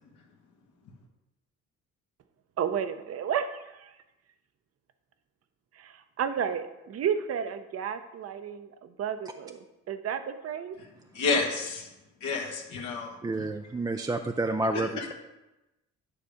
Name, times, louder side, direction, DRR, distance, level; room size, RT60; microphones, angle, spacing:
voice 1, 2.6-3.9 5.7-10.8, right 8 dB, 55° right, 10 dB, 0.7 m, -32 dB
voice 2, 11.1-11.9 12.2-13.5 14.7-15.1, left 4 dB, 75° left, -1 dB, 1.3 m, -30 dB
voice 3, 13.2-15.1, right 2 dB, 15° right, 6 dB, 0.4 m, -29 dB
9.8 x 3.4 x 6.3 m, 1.0 s
cardioid pair, 90°, 30 cm